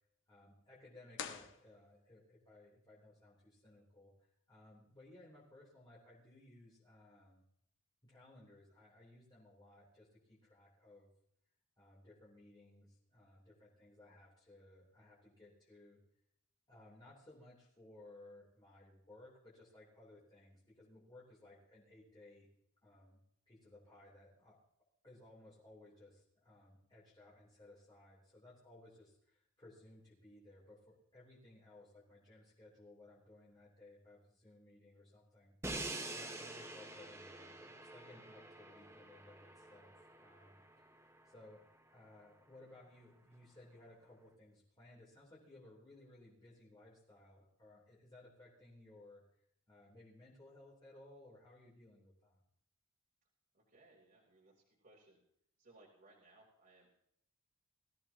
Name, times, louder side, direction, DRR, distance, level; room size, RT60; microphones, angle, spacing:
voice 1, 0.3-7.4 8.0-11.1 11.8-16.0 16.7-22.5 22.8-23.2 23.5-24.6 25.0-35.6 36.1-41.0 41.2-41.6 41.9-49.2 49.7-52.4, left 2 dB, 20° left, -6 dB, 3.3 m, -60 dB
sound 1, 1.1-2.3, left 7 dB, 60° left, 1.4 m, -48 dB
Crash cymbal, 35.6-41.6, right 2 dB, 15° right, 1.2 m, -47 dB
voice 2, 53.5-55.2 55.6-56.9, right 2 dB, 45° right, -5 dB, 3.1 m, -65 dB
21.0 x 14.5 x 2.9 m, 0.73 s
head